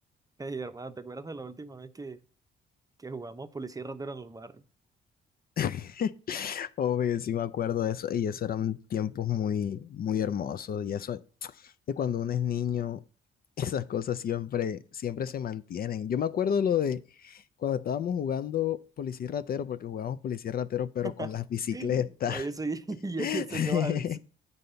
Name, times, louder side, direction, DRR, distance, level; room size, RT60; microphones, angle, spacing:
voice 1, 0.4-2.2 3.0-4.7 21.0-21.3 21.7-24.2, right 3 dB, 20° right, 0.7 m, -37 dB
voice 2, 5.6-13.0 13.6-22.5 23.2-24.2, left 9 dB, 50° left, 0.4 m, -30 dB
8.5 x 4.1 x 6.7 m
cardioid pair, 90°, 20 cm